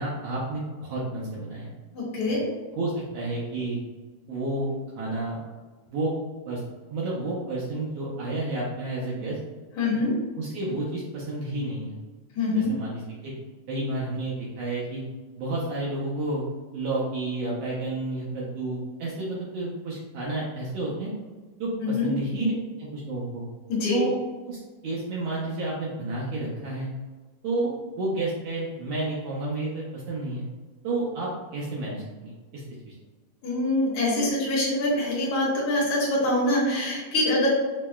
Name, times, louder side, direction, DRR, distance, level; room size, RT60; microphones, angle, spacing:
voice 1, 0.0-1.7 2.8-3.8 4.3-5.4 5.9-6.1 6.5-6.6 6.9-9.4 10.4-12.0 12.5-13.3 13.7-15.0 15.4-16.4 16.7-21.1 21.6-22.5 22.8-23.5 23.9-24.1 24.5-26.9 27.4-30.5 30.8-32.9, right 2 dB, 85° right, -6 dB, 1.4 m, -30 dB
voice 2, 1.9-2.4 9.8-10.1 12.4-12.7 21.8-22.1 23.7-24.0 33.4-37.5, left 2 dB, 55° left, -7 dB, 1.8 m, -24 dB
6.0 x 2.1 x 2.2 m, 1.3 s
omnidirectional pair, 3.7 m